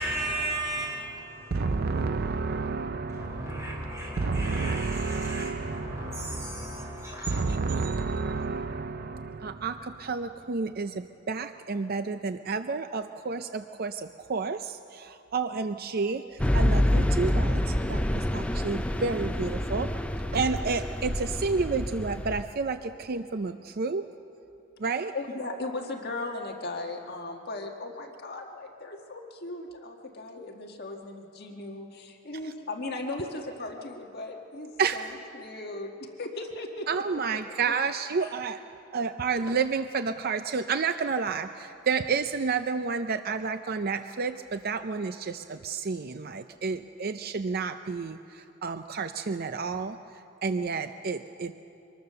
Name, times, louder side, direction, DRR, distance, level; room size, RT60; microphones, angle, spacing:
voice 1, 0.0-1.6 3.1-7.5, right 1 dB, 15° right, -3 dB, 5.3 m, -35 dB
voice 2, 1.5-7.0 7.3-19.9 20.3-24.1 24.8-25.1 34.8-35.0 36.9-38.6 38.9-50.0 50.4-51.5, right 4 dB, 45° right, 9 dB, 0.5 m, -30 dB
sound 1, 16.4-22.4, left 1 dB, 5° left, 0.6 m, -27 dB
voice 3, 25.1-37.4 37.7-37.8 38.2-38.3, left 2 dB, 50° left, 2 dB, 1.6 m, -37 dB
24.5 x 20.5 x 6.8 m, 2.8 s
head